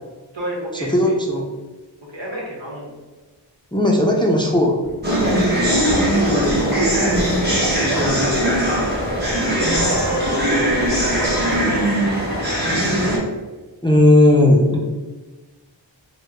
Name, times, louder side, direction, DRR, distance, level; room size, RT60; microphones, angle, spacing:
voice 1, 0.3-1.1 2.1-2.9 5.2-6.2 9.6-12.0, equal, 75° right, -3 dB, 1.0 m, -30 dB
voice 2, 0.9-1.4 3.7-4.8 7.9-8.2 13.8-14.8, left 1 dB, 10° left, -1 dB, 0.4 m, -15 dB
sound 1, 4.8-11.7, right 2 dB, 45° right, 1.0 m, -28 dB
sound 2, 5.0-13.2, equal, 20° right, 1.1 m, -20 dB
2.8 x 2.1 x 3.5 m, 1.2 s
wide cardioid pair, 55°, 45 cm